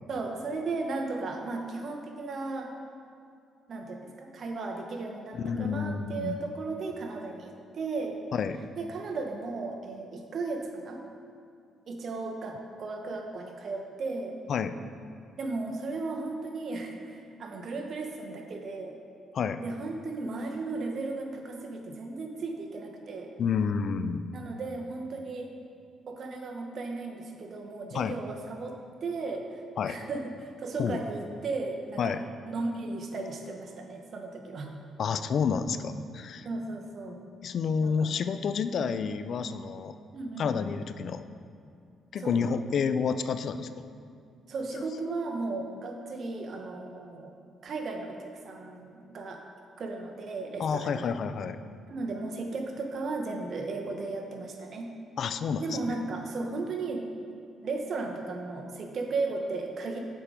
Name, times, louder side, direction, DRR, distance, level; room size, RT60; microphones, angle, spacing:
voice 1, 0.1-2.7 3.7-8.2 8.8-11.0 11.9-14.4 15.4-19.0 19.6-23.3 24.3-25.5 26.1-29.6 29.9-32.2 32.5-34.7 36.4-37.2 37.8-38.2 40.1-40.7 42.2-42.4 44.5-47.3 47.6-49.4 49.8-51.1 51.9-54.9 55.6-57.1 57.6-60.0, right 3 dB, 55° right, 2 dB, 0.9 m, -35 dB
voice 2, 5.3-6.4 8.3-8.6 14.5-14.8 19.3-19.6 23.4-24.3 27.9-28.2 29.8-30.0 30.8-31.0 32.0-32.2 35.0-36.5 37.4-40.0 40.4-41.3 42.1-43.9 44.8-44.9 50.6-51.6 55.2-56.0, left 6 dB, 60° left, 11 dB, 0.3 m, -29 dB
7.3 x 5.3 x 4.9 m, 2.4 s
cardioid pair, 90°, 0 cm